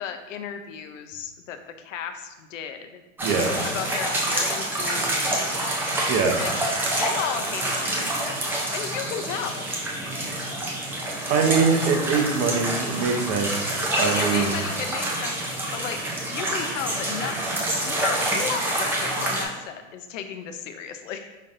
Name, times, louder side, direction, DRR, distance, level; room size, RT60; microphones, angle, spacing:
voice 1, 0.0-3.0 3.7-6.0 6.4-6.5 6.9-8.4 8.7-9.7 14.0-15.4 15.7-16.0 16.3-21.4, left 7 dB, 65° left, 7 dB, 0.6 m, -34 dB
sound 1, 3.2-19.4, right 1 dB, 5° right, 0.4 m, -27 dB
voice 2, 3.2-3.5 6.1-6.4 11.3-14.6, right 5 dB, 35° right, 3 dB, 0.8 m, -23 dB
5.2 x 3.8 x 2.5 m, 1.1 s
hypercardioid pair, 120°, 42 cm